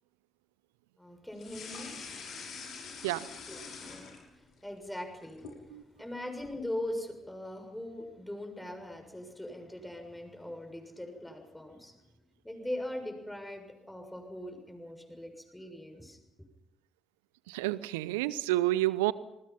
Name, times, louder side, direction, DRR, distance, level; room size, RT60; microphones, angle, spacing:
voice 1, 1.0-1.9 3.5-4.1 4.4-12.0 12.4-16.2, left 1 dB, 5° left, 5 dB, 6.9 m, -41 dB
sound 1, 1.4-4.6 4.9-5.6, left 5 dB, 60° left, 6.1 m, -44 dB
voice 2, 17.5-19.1, right 16 dB, 75° right, 19 dB, 0.7 m, -29 dB
28.0 x 21.0 x 5.7 m, 0.91 s
figure-of-eight pair, 45°, 0 cm